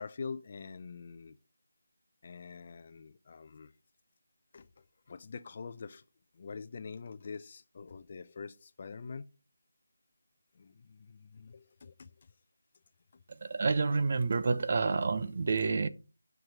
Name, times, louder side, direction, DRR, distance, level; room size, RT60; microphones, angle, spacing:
voice 1, 0.0-1.4 2.2-3.7 4.5-4.7 5.1-6.0 6.4-9.3 10.6-12.1, left 5 dB, 35° left, 0.6 m, -45 dB
voice 2, 13.3-15.9, right 4 dB, 45° right, 0.7 m, -29 dB
10.5 x 6.1 x 5.0 m
figure-of-eight pair, 165°, 0 cm